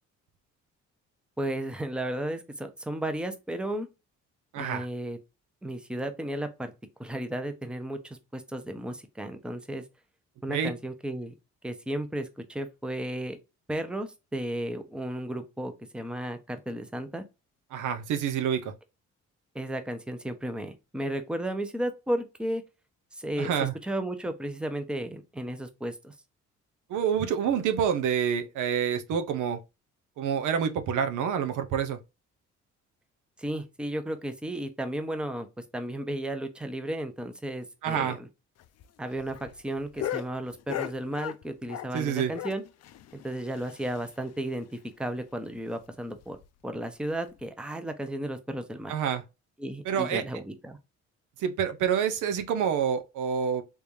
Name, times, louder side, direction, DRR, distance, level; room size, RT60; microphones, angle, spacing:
voice 1, 1.4-3.9 4.6-5.2 5.6-6.7 7.0-9.8 10.4-11.3 11.6-13.4 13.7-17.2 19.5-22.6 23.1-26.1 33.4-35.5 35.7-38.3 39.0-42.6 43.1-44.7 45.0-46.4 46.6-48.9 49.6-50.8, right 1 dB, 5° right, 0.7 m, -34 dB
voice 2, 4.5-4.9 10.5-10.7 17.7-18.7 23.4-23.7 26.9-29.6 30.2-32.0 37.8-38.2 41.9-42.3 48.9-49.2 49.8-50.2 51.4-53.6, right 8 dB, 80° right, 0.7 m, -27 dB
sound 1, 38.6-42.0 42.3-44.3 44.6-44.7 45.0-45.1 45.5-45.6 46.2-46.4 47.3-47.4, left 11 dB, 55° left, 0.5 m, -38 dB
3.6 x 3.3 x 2.6 m
cardioid pair, 90°, 30 cm